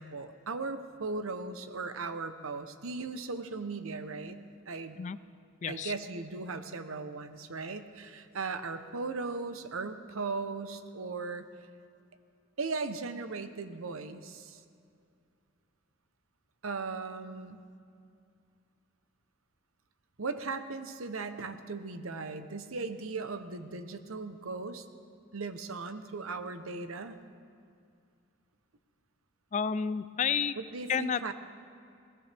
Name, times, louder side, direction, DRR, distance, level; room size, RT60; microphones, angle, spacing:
voice 1, 0.0-4.4 4.7-5.0 5.7-11.5 12.6-14.6 16.6-17.6 20.2-24.9 25.3-27.2 30.6-31.3, right 4 dB, 85° right, 10 dB, 0.9 m, -37 dB
voice 2, 5.6-5.9 29.5-30.5 30.9-31.3, left 6 dB, 35° left, 15 dB, 0.3 m, -30 dB
22.0 x 18.0 x 3.5 m, 2.4 s
head